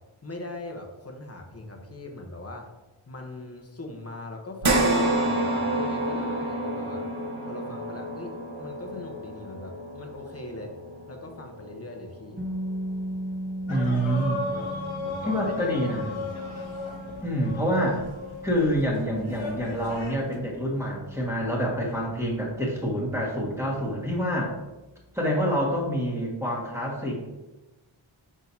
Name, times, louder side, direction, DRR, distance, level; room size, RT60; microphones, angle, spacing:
voice 1, 0.2-2.7 3.1-7.1 7.4-10.7 11.1-12.4 13.8-14.2 14.5-14.7 15.0-16.3, left 2 dB, 30° left, 2 dB, 1.0 m, -40 dB
sound 1, 4.6-13.2 13.7-13.8 15.2-15.3, right 1 dB, 70° right, 1.2 m, -29 dB
sound 2, 12.4-24.2, equal, 20° right, 1.2 m, -39 dB
sound 3, 13.7-20.4, left 3 dB, 65° left, 1.0 m, -36 dB
voice 2, 13.7-14.4 15.2-16.1 17.2-18.0 18.4-24.5 25.1-27.3, equal, 5° right, -3 dB, 1.8 m, -27 dB
6.2 x 6.2 x 2.8 m, 1.1 s
wide cardioid pair, 110°, 49 cm